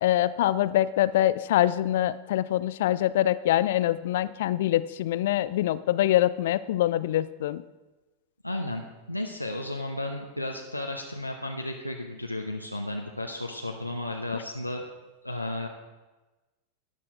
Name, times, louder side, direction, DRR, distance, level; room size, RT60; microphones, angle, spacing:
voice 1, 0.0-7.6, left 13 dB, 55° left, 17 dB, 0.4 m, -24 dB
voice 2, 8.4-14.9 15.2-15.7, left 1 dB, 90° left, 1 dB, 0.9 m, -33 dB
13.5 x 10.0 x 3.8 m, 1.1 s
figure-of-eight pair, 90°, 0 cm